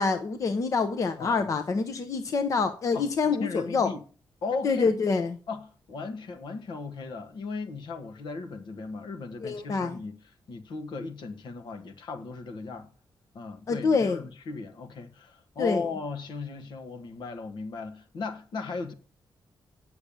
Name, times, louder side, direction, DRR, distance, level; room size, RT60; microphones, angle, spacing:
voice 1, 0.0-3.9 4.6-5.3 9.4-10.0 13.7-14.2 15.6-15.8, left 4 dB, 40° left, 0.9 m, -26 dB
voice 2, 1.2-1.5 2.9-3.0 3.4-4.0 4.4-4.9 5.5-10.2 10.5-12.9 13.3-18.9, left 4 dB, 70° left, 1.5 m, -36 dB
8.8 x 6.9 x 6.8 m
wide cardioid pair, 170°, 8 cm